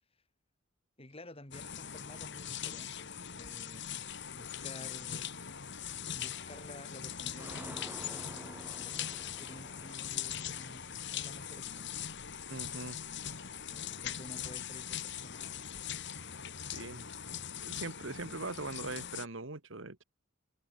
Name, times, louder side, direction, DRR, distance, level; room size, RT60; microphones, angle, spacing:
voice 1, 1.0-3.9 4.3-5.7 6.1-11.9 13.7-15.9, left 1 dB, 30° left, 3.4 m, -52 dB
sound 1, 1.5-19.3, left 9 dB, 55° left, 2.3 m, -41 dB
sound 2, 5.3-5.7 6.2-6.8 7.1-12.5 12.8-14.0, right 1 dB, 10° right, 2.3 m, -53 dB
voice 2, 12.5-13.0 16.7-17.1 17.5-20.0, right 3 dB, 60° right, 1.9 m, -41 dB
head